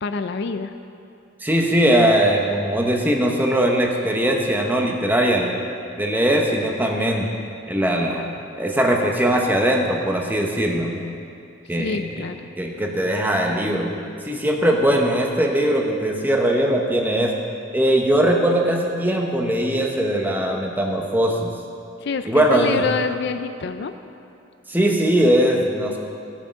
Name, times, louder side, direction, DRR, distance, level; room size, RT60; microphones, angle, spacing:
voice 1, 0.0-0.7 11.8-12.5 22.0-23.9, left 5 dB, 55° left, 9 dB, 0.4 m, -26 dB
voice 2, 1.4-5.6 6.0-7.3 7.7-8.3 8.6-11.0 11.7-12.3 12.6-13.9 14.2-17.3 17.7-21.5 22.3-22.8 24.7-26.0, right 1 dB, 10° right, 1 dB, 0.9 m, -20 dB
15.0 x 7.3 x 5.3 m, 2.6 s
head